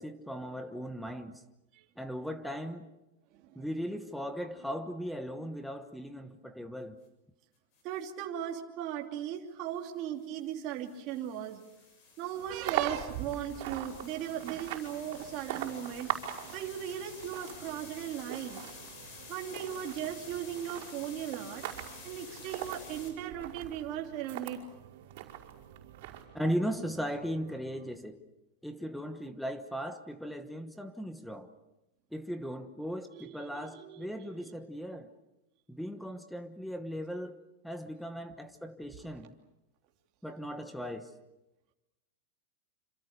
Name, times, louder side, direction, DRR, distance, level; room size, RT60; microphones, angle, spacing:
voice 1, 0.0-1.4 2.0-2.9 3.5-7.0 26.3-28.2 28.6-31.5 32.1-35.1 35.7-37.4 37.6-39.3 40.2-41.1, equal, ahead, 1.2 m, -37 dB
voice 2, 3.3-3.6 7.8-11.6 12.2-16.1 16.5-18.6 19.3-21.6 22.0-24.6 33.1-34.1, right 10 dB, 35° right, 2.9 m, -37 dB
sound 1, 7.7-8.1 10.2-23.1, left 4 dB, 40° left, 6.9 m, -51 dB
sound 2, 12.3-27.9, right 10 dB, 75° right, 2.9 m, -55 dB
sound 3, 12.5-24.6 25.1-26.2, right 12 dB, 50° right, 5.3 m, -41 dB
27.5 x 27.0 x 6.7 m
supercardioid pair, 170°, 0 cm